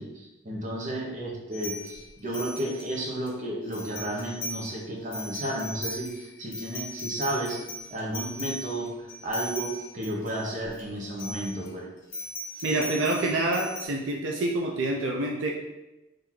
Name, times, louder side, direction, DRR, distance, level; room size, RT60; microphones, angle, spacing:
voice 1, 0.0-7.6 7.9-11.9, right 1 dB, 40° right, -2 dB, 0.8 m, -33 dB
sound 1, 1.5-3.3 3.7-4.8 5.0-10.8 11.1-11.7 12.1-13.9, left 1 dB, 70° left, 1.0 m, -38 dB
voice 2, 12.6-15.5, right 2 dB, 70° right, -1 dB, 0.5 m, -27 dB
3.8 x 2.6 x 4.5 m, 0.97 s
head